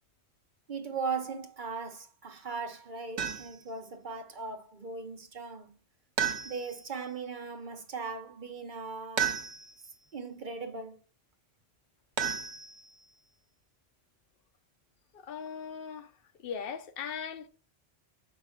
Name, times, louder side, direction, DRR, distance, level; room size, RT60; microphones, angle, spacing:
voice 1, 0.7-5.8 6.4-9.4 10.1-11.0, right 4 dB, 50° right, 0.9 m, -38 dB
sound 1, 3.2-3.7 6.2-6.9 9.2-9.9 12.2-13.0, right 8 dB, 85° right, 1.1 m, -33 dB
voice 2, 15.1-16.1 16.4-17.5, left 7 dB, 60° left, 0.9 m, -39 dB
6.6 x 5.2 x 3.5 m
omnidirectional pair, 1.1 m